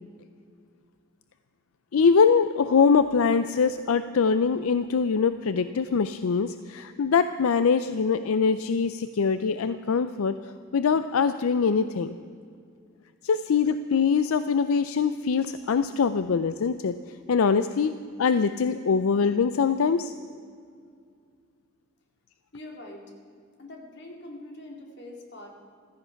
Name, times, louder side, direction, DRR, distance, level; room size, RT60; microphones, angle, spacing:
voice 1, 1.9-10.4 10.7-12.2 13.2-17.0 17.3-20.1, left 5 dB, 80° left, 12 dB, 0.4 m, -23 dB
voice 2, 22.5-23.1 23.6-25.5, left 1 dB, 55° left, 1 dB, 2.4 m, -43 dB
15.5 x 13.5 x 5.8 m, 2.3 s
head